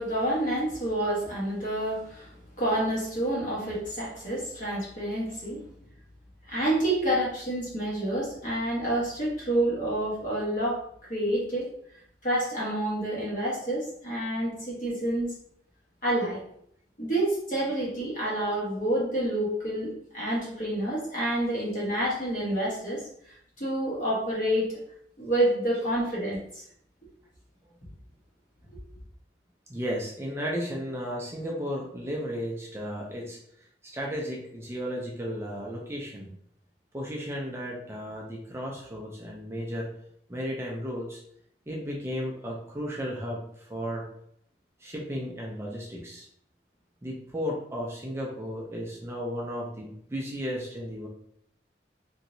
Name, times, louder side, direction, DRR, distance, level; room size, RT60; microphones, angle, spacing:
voice 1, 0.0-2.3 2.6-5.6 6.5-11.7 12.2-15.3 16.0-16.4 17.0-23.0 23.6-24.8 25.2-26.6, right 1 dB, 45° left, -5 dB, 1.2 m, -28 dB
voice 2, 29.7-36.3 36.9-39.9 40.3-41.2 41.7-44.1 44.8-46.3 47.0-51.1, equal, 15° right, -2 dB, 0.4 m, -34 dB
3.0 x 2.7 x 2.6 m, 0.70 s
head